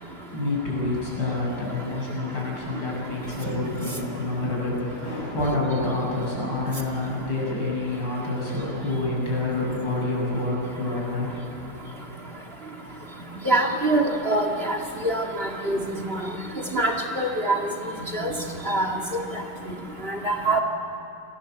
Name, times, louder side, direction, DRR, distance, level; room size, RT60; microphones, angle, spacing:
voice 1, 0.3-12.2, left 2 dB, 90° left, -4 dB, 8.3 m, -28 dB
Drum, 3.5-5.6, right 1 dB, 70° right, 3.5 m, -38 dB
voice 2, 13.5-14.8 15.0-16.3 16.7-17.6 18.1-18.3 18.7-19.2 20.0-20.6, right 2 dB, 35° right, 1 dB, 2.3 m, -24 dB
27.0 x 19.5 x 8.0 m, 2.8 s
omnidirectional pair, 1.9 m